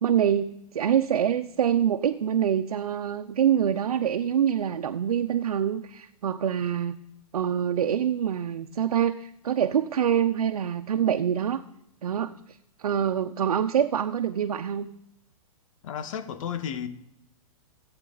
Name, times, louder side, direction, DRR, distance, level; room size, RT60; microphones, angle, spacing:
voice 1, 0.0-7.0 7.3-11.6 12.0-12.3 12.8-14.9, right 9 dB, 85° right, 1.0 m, -25 dB
voice 2, 15.8-16.9, left 8 dB, 60° left, 1.8 m, -33 dB
26.0 x 8.9 x 4.1 m
hypercardioid pair, 135°, 19 cm